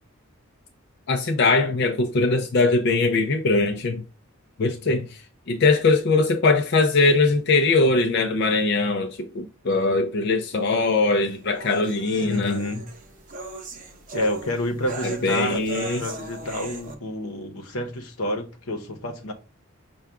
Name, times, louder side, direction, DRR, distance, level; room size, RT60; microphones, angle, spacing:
voice 1, 1.1-4.0 4.6-5.0 5.5-12.6 15.0-16.0, left 3 dB, 50° left, 0.4 m, -21 dB
sound 1, 10.5-16.9, right 4 dB, 40° right, 0.7 m, -37 dB
voice 2, 12.2-12.9 14.1-15.6 16.0-19.3, left 1 dB, 85° left, 0.8 m, -29 dB
5.7 x 2.3 x 3.5 m
head